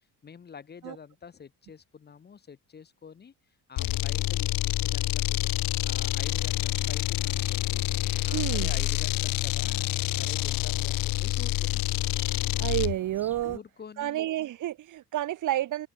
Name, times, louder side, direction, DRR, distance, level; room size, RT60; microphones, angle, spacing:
voice 1, 0.2-3.3 3.7-5.5 5.8-11.9 13.4-14.3, left 6 dB, 30° left, 1.1 m, -47 dB
sound 1, 3.8-13.0, left 18 dB, 70° left, 0.6 m, -28 dB
sound 2, 6.2-13.6, right 1 dB, 5° right, 2.5 m, -50 dB
voice 2, 8.3-8.7 12.6-13.6 14.0-15.9, right 13 dB, 60° right, 1.1 m, -30 dB
cardioid pair, 140°, 35 cm